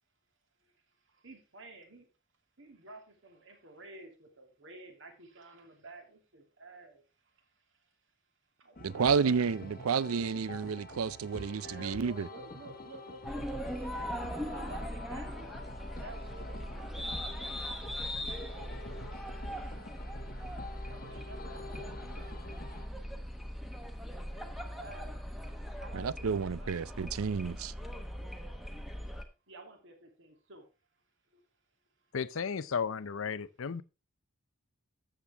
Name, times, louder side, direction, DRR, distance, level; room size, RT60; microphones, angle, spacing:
voice 1, 1.0-2.1 2.6-7.9 8.6-9.3 11.6-13.6 14.5-15.6 16.0-17.8 18.4-19.0 20.9-22.4 24.3-25.2 25.8-26.7 29.5-30.6 31.3-31.4, right 2 dB, 60° right, 2.6 m, -51 dB
sound 1, 8.8-22.9, left 2 dB, 40° left, 1.4 m, -47 dB
voice 2, 8.8-12.3 25.9-27.7, right 6 dB, 80° right, 0.5 m, -31 dB
sound 2, 13.2-29.2, equal, ahead, 1.1 m, -40 dB
voice 3, 32.1-33.8, left 6 dB, 65° left, 0.6 m, -34 dB
13.0 x 7.4 x 3.4 m
head